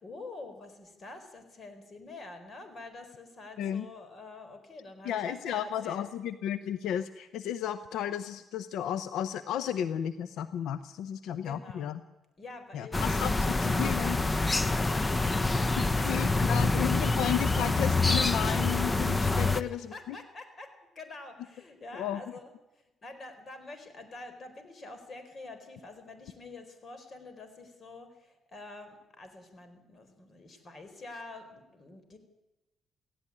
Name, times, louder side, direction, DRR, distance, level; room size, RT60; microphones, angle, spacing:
voice 1, 0.0-6.0 11.4-12.0 12.4-17.1 19.5-32.2, left 2 dB, 40° left, 8 dB, 4.3 m, -47 dB
voice 2, 5.0-12.0 12.7-14.2 16.1-20.2 21.9-22.2, left 10 dB, 85° left, 13 dB, 0.7 m, -33 dB
sound 1, 12.9-19.6, left 3 dB, 20° left, 0.8 m, -26 dB
17.5 x 16.0 x 9.8 m, 1.0 s
cardioid pair, 90°, 0 cm